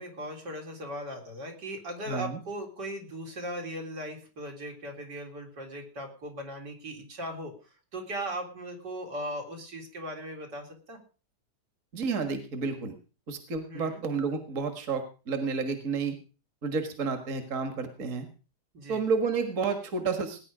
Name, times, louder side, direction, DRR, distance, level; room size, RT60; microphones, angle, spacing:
voice 1, 0.0-7.5 7.9-11.0 13.7-14.0 18.7-19.1, right 1 dB, 85° right, 2 dB, 4.4 m, -38 dB
voice 2, 2.1-2.4 11.9-12.9 13.3-16.2 16.6-18.3 18.9-20.4, right 5 dB, 50° right, 7 dB, 2.0 m, -30 dB
19.5 x 10.0 x 5.0 m, 0.36 s
omnidirectional pair, 1.8 m